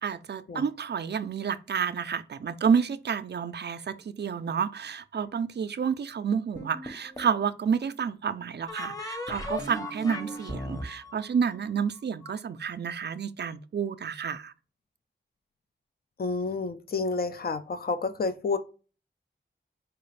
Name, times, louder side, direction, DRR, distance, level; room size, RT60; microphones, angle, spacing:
voice 1, 0.0-14.5, right 7 dB, 55° right, 0.4 m, -30 dB
sound 1, 6.6-7.4 8.7-12.3, left 1 dB, 15° left, 0.8 m, -37 dB
voice 2, 16.2-18.6, left 4 dB, 50° left, 0.5 m, -29 dB
4.6 x 2.4 x 3.2 m
wide cardioid pair, 60°, 20 cm